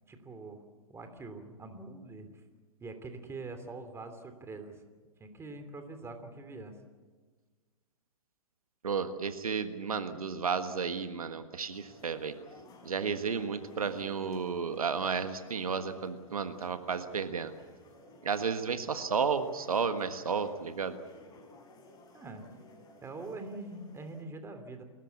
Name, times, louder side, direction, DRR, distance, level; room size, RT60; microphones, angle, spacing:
voice 1, 0.1-0.6 0.9-2.4 2.8-4.8 5.2-6.7 22.1-22.5 23.0-24.8, right 3 dB, 15° right, 7 dB, 3.1 m, -44 dB
voice 2, 8.8-12.3 12.8-17.5 18.2-21.0, right 5 dB, 85° right, 9 dB, 1.6 m, -32 dB
sound 1, 11.7-24.2, left 2 dB, 20° left, 5.9 m, -55 dB
29.0 x 14.5 x 8.5 m, 1.4 s
hypercardioid pair, 115°, 18 cm